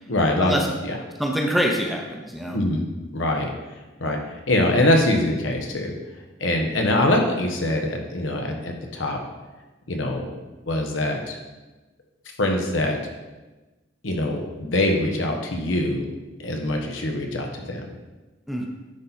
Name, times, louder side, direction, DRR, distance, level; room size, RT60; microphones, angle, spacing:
voice 1, 0.1-0.5 0.8-1.0 2.5-2.8 3.1-3.5 4.0-4.2 4.5-5.9 6.4-9.2 9.9-10.3 10.7-11.4 12.4-13.0 14.0-16.1 16.4-17.8, left 1 dB, 85° left, 2 dB, 1.1 m, -23 dB
voice 2, 1.2-2.6 18.5-18.7, equal, ahead, 0 dB, 0.8 m, -24 dB
9.9 x 4.0 x 4.4 m, 1.1 s
head